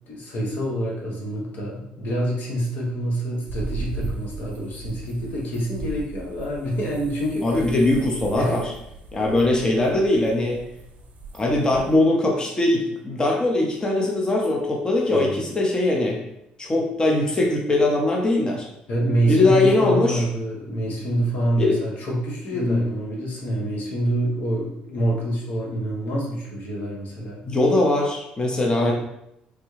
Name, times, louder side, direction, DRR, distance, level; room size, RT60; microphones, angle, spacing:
voice 1, 0.1-7.5 8.4-8.6 15.1-15.4 18.9-27.4 28.8-28.9, right 1 dB, 65° left, -2 dB, 1.1 m, -26 dB
sound 1, 3.5-12.0, right 2 dB, 50° right, 0.6 m, -37 dB
voice 2, 7.4-8.7 9.1-10.6 11.3-16.2 16.6-18.6 19.3-20.2 21.6-21.8 22.5-22.9 27.5-28.9, left 2 dB, 25° left, -1 dB, 0.8 m, -21 dB
3.4 x 2.3 x 3.1 m, 0.80 s
supercardioid pair, 70°, 3 cm